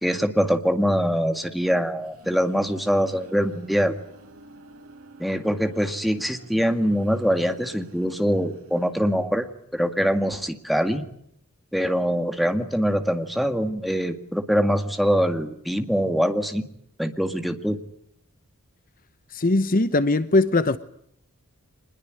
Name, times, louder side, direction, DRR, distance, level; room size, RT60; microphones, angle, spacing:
voice 1, 0.0-3.9 5.2-9.5 9.7-11.1 11.7-16.7 17.0-17.8, equal, ahead, 1.9 m, -23 dB
sound 1, 1.9-9.4, right 2 dB, 80° right, 4.8 m, -49 dB
voice 2, 19.3-20.8, left 2 dB, 40° left, 0.9 m, -20 dB
25.0 x 21.0 x 9.1 m
head